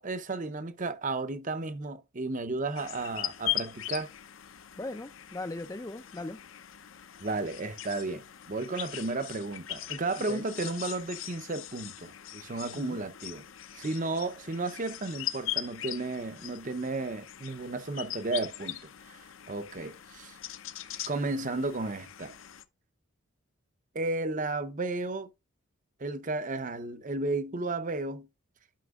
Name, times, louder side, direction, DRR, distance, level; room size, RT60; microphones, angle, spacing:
voice 1, 0.0-4.1 7.2-13.4 13.7-18.8 19.1-19.2 19.5-20.4 21.1-22.3 23.9-25.3 26.0-28.3, right 2 dB, 35° right, 0.6 m, -33 dB
sound 1, 2.8-22.6, left 13 dB, 60° left, 0.6 m, -40 dB
voice 2, 4.8-6.4 10.3-10.4 12.7-13.0, left 2 dB, 15° left, 0.4 m, -39 dB
11.5 x 5.9 x 2.4 m
head